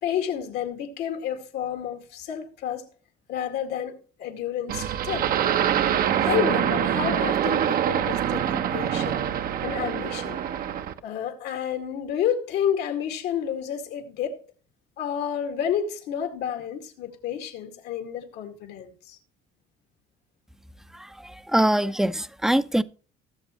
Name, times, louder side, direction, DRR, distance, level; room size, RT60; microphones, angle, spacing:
voice 1, 0.0-2.9 3.3-5.3 6.2-9.3 9.6-10.4 11.0-14.4 15.0-19.2, left 9 dB, 80° left, 2.1 m, -30 dB
sound 1, 4.7-11.0, right 9 dB, 60° right, 0.9 m, -25 dB
voice 2, 20.9-22.8, right 1 dB, 5° right, 0.6 m, -23 dB
18.5 x 7.2 x 3.1 m
cardioid pair, 110°, 17 cm